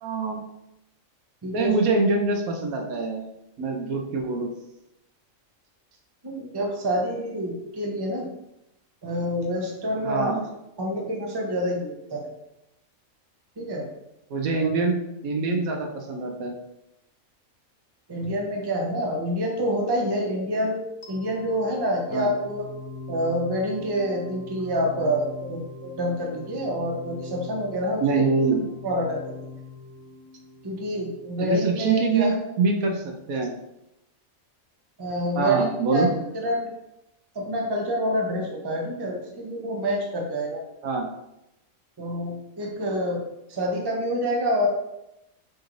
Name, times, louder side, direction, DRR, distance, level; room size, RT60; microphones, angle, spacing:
voice 1, 0.0-0.4 1.5-3.2 3.6-4.5 10.0-10.4 14.3-16.6 22.1-22.3 28.0-28.6 31.4-33.5 35.3-36.1 40.8-41.1, right 4 dB, 85° right, 2 dB, 1.1 m, -24 dB
voice 2, 1.4-1.7 6.2-8.3 9.0-10.4 10.8-12.3 13.6-13.9 14.5-14.7 18.1-22.7 23.1-28.3 28.8-29.4 30.6-32.4 35.0-35.6 35.9-36.1 36.4-36.7 37.3-40.6 42.0-43.2 43.5-44.7, equal, 25° right, 0 dB, 0.5 m, -27 dB
sound 1, 21.0-32.0, left 3 dB, 80° left, 1.2 m, -42 dB
5.0 x 3.1 x 2.5 m, 0.86 s
omnidirectional pair, 1.4 m